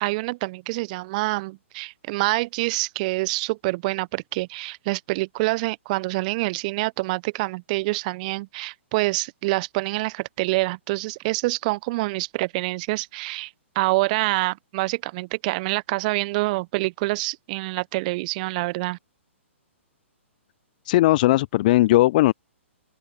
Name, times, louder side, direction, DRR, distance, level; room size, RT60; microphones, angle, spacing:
voice 1, 0.0-19.0, right 23 dB, 35° right, 0.9 m, -26 dB
voice 2, 20.8-22.3, left 17 dB, 40° left, 0.6 m, -18 dB
open air
figure-of-eight pair, 120°, 7 cm